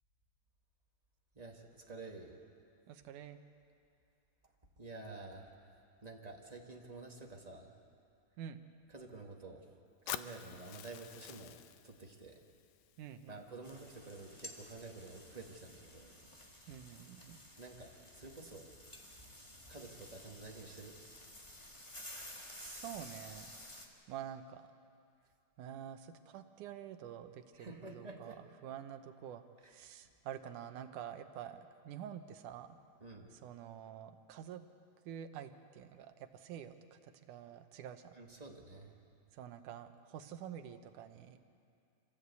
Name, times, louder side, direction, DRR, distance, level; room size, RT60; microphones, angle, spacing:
voice 1, 1.3-2.4 4.8-7.8 8.9-9.6 10.0-11.6 11.8-12.4 13.3-16.3 17.6-18.7 19.7-21.0 27.5-28.4 29.6-29.8 33.0-33.3 38.1-39.0, right 3 dB, 30° right, 1 dB, 0.7 m, -50 dB
voice 2, 2.9-3.4 8.4-8.6 13.0-13.4 16.7-17.4 22.6-23.5 24.1-24.7 25.6-28.4 28.6-32.8 33.3-34.6 35.1-38.1 39.3-41.4, right 9 dB, 80° right, 8 dB, 2.4 m, -48 dB
Fire, 10.1-14.1, left 12 dB, 75° left, 1.8 m, -48 dB
sound 1, 13.6-23.9, left 1 dB, 15° left, 1.1 m, -53 dB
25.5 x 16.0 x 8.3 m, 2.4 s
omnidirectional pair, 3.6 m